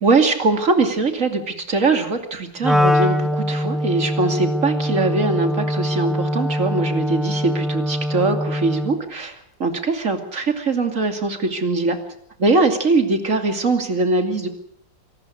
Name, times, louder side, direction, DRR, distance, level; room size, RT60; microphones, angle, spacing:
voice 1, 0.0-9.3 9.6-12.0 12.4-14.5, right 3 dB, 45° right, 6 dB, 2.9 m, -21 dB
Wind instrument woodwind instrument, 2.6-9.0, left 1 dB, ahead, 1.9 m, -22 dB
26.5 x 19.5 x 6.5 m, 0.68 s
omnidirectional pair, 2.0 m